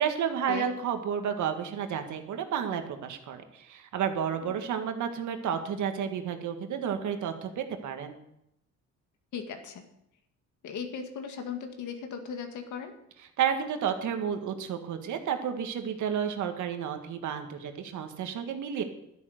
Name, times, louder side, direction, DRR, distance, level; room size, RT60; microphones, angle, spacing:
voice 1, 0.0-8.2 13.4-18.8, right 8 dB, 75° right, 6 dB, 1.8 m, -31 dB
voice 2, 9.3-9.8 10.6-12.9, left 6 dB, 75° left, 5 dB, 2.1 m, -37 dB
12.5 x 10.5 x 6.6 m, 0.80 s
cardioid pair, 90°, 30 cm